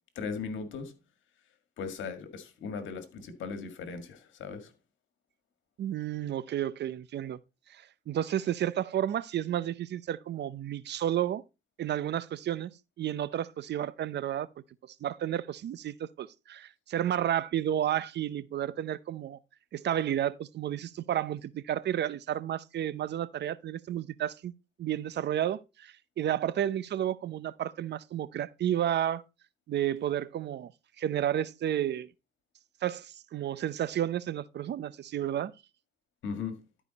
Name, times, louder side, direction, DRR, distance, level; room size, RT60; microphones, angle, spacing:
voice 1, 0.2-0.9 1.8-4.7 36.2-36.5, left 5 dB, 75° left, 1.9 m, -38 dB
voice 2, 5.8-7.4 7.7-11.4 11.8-12.7 13.0-14.5 15.0-19.4 19.7-24.5 24.8-29.2 29.7-30.7 31.0-32.1 32.8-35.5, right 11 dB, 60° right, 0.6 m, -31 dB
12.0 x 5.0 x 4.0 m
cardioid pair, 90°, 20 cm